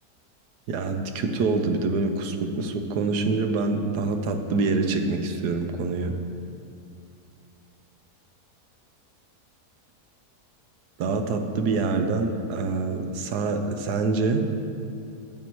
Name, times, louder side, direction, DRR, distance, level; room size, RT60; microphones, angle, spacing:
voice 1, 0.7-6.2 11.0-14.5, right 3 dB, 75° right, 6 dB, 1.3 m, -25 dB
12.5 x 9.7 x 3.1 m, 2.5 s
omnidirectional pair, 1.7 m